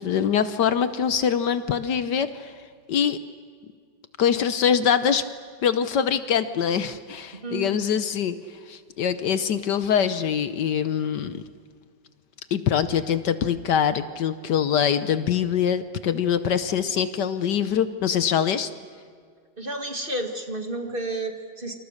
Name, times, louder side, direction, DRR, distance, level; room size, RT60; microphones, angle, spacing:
voice 1, 0.0-2.5 2.9-3.2 4.2-5.2 5.6-8.4 8.7-11.4 12.5-18.7, left 8 dB, 65° left, 12 dB, 1.4 m, -23 dB
voice 2, 7.3-7.7 19.6-21.7, right 1 dB, 30° right, 5 dB, 2.0 m, -31 dB
28.0 x 27.0 x 6.6 m, 2.1 s
omnidirectional pair, 2.1 m